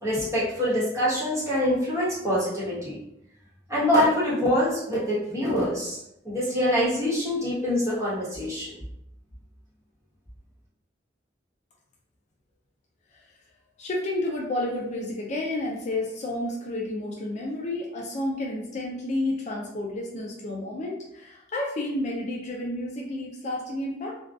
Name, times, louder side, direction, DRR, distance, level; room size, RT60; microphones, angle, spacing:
voice 1, 0.0-3.0 3.7-6.0 6.2-8.7, equal, 15° right, -9 dB, 1.1 m, -25 dB
voice 2, 13.8-24.1, left 1 dB, 40° left, -2 dB, 0.4 m, -31 dB
2.5 x 2.2 x 2.3 m, 0.81 s
head